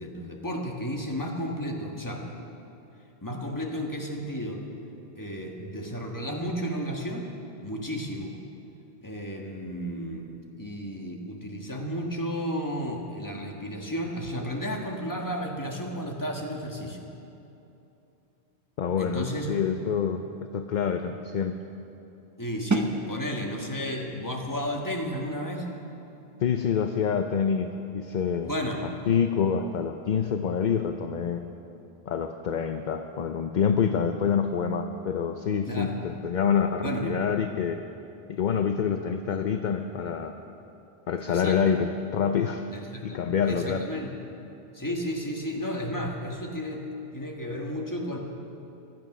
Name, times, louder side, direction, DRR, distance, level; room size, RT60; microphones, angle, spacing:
voice 1, 0.0-2.3 3.2-4.6 5.2-7.3 7.6-8.3 9.0-10.2 10.6-17.0 19.0-19.6 22.4-25.7 28.4-28.8 35.7-35.9 36.8-37.1 41.3-41.7 42.7-44.1 44.7-46.8 47.1-48.2, equal, 15° left, 0 dB, 1.6 m, -33 dB
voice 2, 18.8-20.2 20.5-21.5 26.4-28.5 29.1-31.4 32.1-37.8 38.3-40.4 41.1-42.6 43.0-43.8, left 7 dB, 50° left, 7 dB, 0.6 m, -26 dB
sound 1, 22.7-28.4, right 3 dB, 20° right, 0.7 m, -36 dB
16.0 x 12.0 x 6.1 m, 2.9 s
omnidirectional pair, 1.2 m